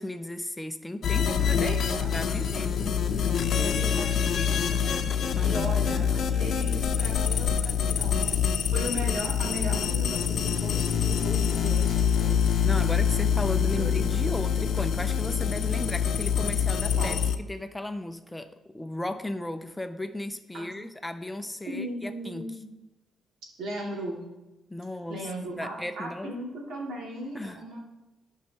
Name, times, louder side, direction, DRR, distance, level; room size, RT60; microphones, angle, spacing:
voice 1, 0.0-1.8 2.1-3.0 4.4-6.1 12.6-17.2 17.5-22.5 24.7-25.3 25.6-26.3 27.3-27.6, left 1 dB, 10° left, 9 dB, 0.4 m, -35 dB
sound 1, 1.0-17.4, left 7 dB, 55° left, 0.6 m, -25 dB
voice 2, 1.6-2.1 3.6-5.0 5.4-8.3 8.7-12.6 13.8-13.9 14.2-14.3 17.0-17.2 20.5-20.7 21.6-22.7 23.6-24.2 25.1-27.8, right 1 dB, 85° right, -3 dB, 2.6 m, -37 dB
14.0 x 5.5 x 2.9 m, 1.0 s
cardioid pair, 155°, 0 cm